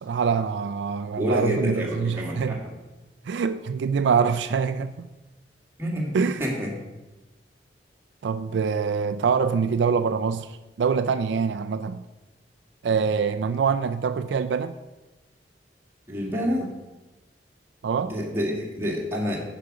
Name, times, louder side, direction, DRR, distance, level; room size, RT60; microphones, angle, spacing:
voice 1, 0.0-2.6 3.3-5.1 6.1-6.4 8.2-12.0 12.8-14.8 17.8-18.1, right 6 dB, 80° right, 0.4 m, -25 dB
voice 2, 1.2-2.7 5.8-6.1 6.4-6.7 16.1-16.7 18.0-19.4, equal, 15° right, 2.0 m, -28 dB
10.5 x 5.0 x 4.8 m
head